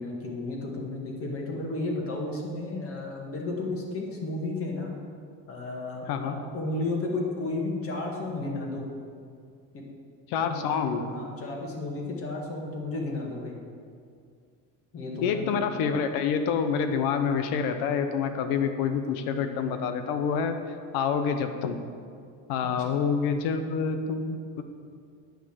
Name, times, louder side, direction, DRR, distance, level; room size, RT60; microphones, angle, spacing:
voice 1, 0.0-4.9 5.5-8.9 9.7-9.8 10.4-10.6 11.1-13.6 14.9-15.6 22.6-22.9, left 2 dB, 40° left, -1 dB, 1.9 m, -33 dB
voice 2, 10.3-11.1 15.2-20.6 20.9-21.8 22.5-24.6, left 6 dB, 75° left, 8 dB, 1.0 m, -27 dB
8.9 x 5.8 x 7.3 m, 2.2 s
cardioid pair, 135°, 36 cm